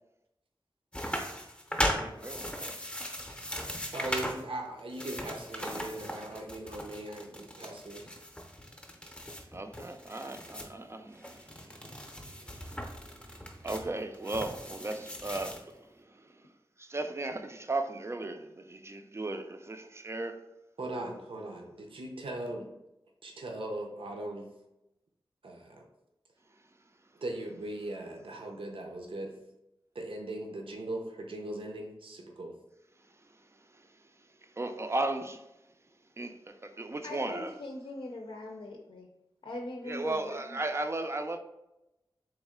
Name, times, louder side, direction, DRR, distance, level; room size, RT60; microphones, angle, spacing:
sound 1, 0.9-4.4 4.8-10.7 11.1-15.6, equal, 10° left, 0.7 m, -38 dB
voice 1, 1.9-2.7 9.5-16.5 16.8-20.4 33.7-33.9 34.6-35.4 36.2-37.5 39.9-41.4, right 2 dB, 30° right, 0.4 m, -36 dB
voice 2, 3.9-8.1 20.8-22.7 23.2-24.5 25.4-25.8 27.2-29.3 29.9-32.5, right 1 dB, 75° right, 0.6 m, -39 dB
voice 3, 37.0-39.1 39.4-40.6, left 1 dB, 70° left, 0.5 m, -41 dB
3.6 x 3.1 x 3.6 m
wide cardioid pair, 65°, 9 cm